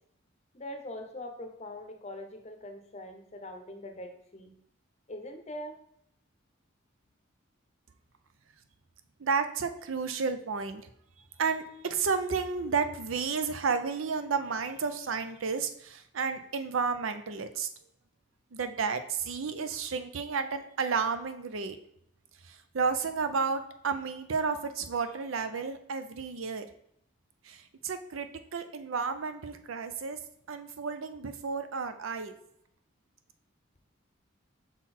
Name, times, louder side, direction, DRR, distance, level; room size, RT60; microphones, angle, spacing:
voice 1, 0.5-4.5 5.1-5.8, left 1 dB, 35° left, 5 dB, 0.7 m, -42 dB
voice 2, 9.2-10.9 11.4-17.7 18.5-21.8 22.4-26.7 27.4-30.2 30.5-32.3, right 5 dB, 75° right, 9 dB, 0.6 m, -32 dB
5.9 x 3.9 x 4.2 m, 0.72 s
head